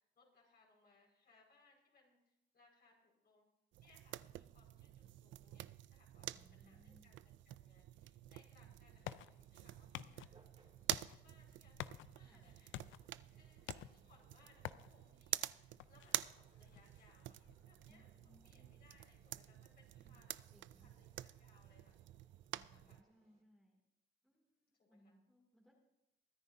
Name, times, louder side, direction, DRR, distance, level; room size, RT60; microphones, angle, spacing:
voice 1, 0.0-3.5 3.8-9.2 9.5-10.3 10.9-13.0 13.3-17.4 17.7-22.0 22.6-23.0 24.7-25.2, left 3 dB, 55° left, -2 dB, 5.2 m, -71 dB
sound 1, 3.7-23.0, right 14 dB, 70° right, 0.4 m, -48 dB
voice 2, 6.2-7.1 12.2-12.5 17.9-18.6 20.0-20.2 20.5-21.0 22.5-23.8 24.2-25.7, equal, ahead, -2 dB, 2.5 m, -69 dB
sound 2, 8.3-19.8, left 13 dB, 75° left, 0.5 m, -54 dB
sound 3, 8.8-23.4, right 3 dB, 30° right, 2.1 m, -75 dB
23.5 x 9.7 x 2.7 m, 0.89 s
cardioid pair, 90°, 20 cm